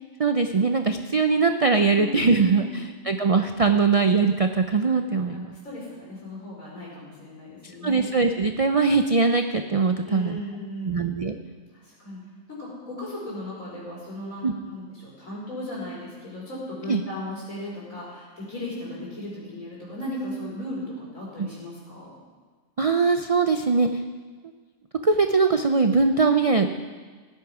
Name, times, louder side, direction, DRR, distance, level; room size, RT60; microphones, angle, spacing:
voice 1, 0.2-5.5 7.8-10.4 10.9-11.4 14.4-14.5 16.9-17.0 21.4-21.5 22.8-24.0 25.0-26.7, right 4 dB, 60° right, 7 dB, 0.3 m, -21 dB
voice 2, 1.9-2.9 5.2-8.1 10.0-11.0 11.7-12.2 12.5-22.1, left 1 dB, 85° left, -6 dB, 5.3 m, -36 dB
16.5 x 10.5 x 4.9 m, 1.4 s
omnidirectional pair, 1.4 m